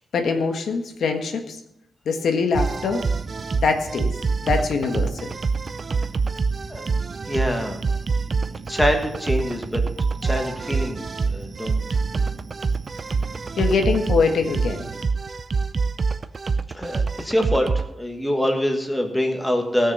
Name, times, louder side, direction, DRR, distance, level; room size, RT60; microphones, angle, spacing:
voice 1, 0.1-1.6 2.0-3.0 3.6-4.1 4.4-5.1 13.6-14.9, left 4 dB, 85° left, 4 dB, 1.5 m, -23 dB
sound 1, 2.5-17.9, right 4 dB, 35° right, 0.5 m, -25 dB
voice 2, 7.3-7.8 8.7-9.8 10.2-11.8 16.7-17.7 18.0-19.9, equal, 5° left, 3 dB, 1.5 m, -24 dB
17.5 x 6.6 x 5.4 m, 0.79 s
wide cardioid pair, 170°, 0 cm